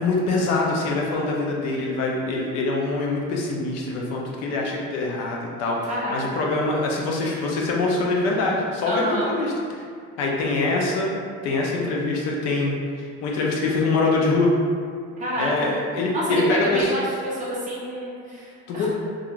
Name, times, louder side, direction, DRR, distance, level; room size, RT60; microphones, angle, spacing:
voice 1, 0.0-9.5 10.2-11.1 11.4-14.5 15.4-16.9 18.7-18.9, left 3 dB, 60° left, -2 dB, 0.5 m, -24 dB
voice 2, 5.9-6.2 8.9-9.3 15.2-15.7 16.1-18.9, equal, 25° right, -7 dB, 0.5 m, -28 dB
2.4 x 2.4 x 3.0 m, 2.2 s
cardioid pair, 175°, 30 cm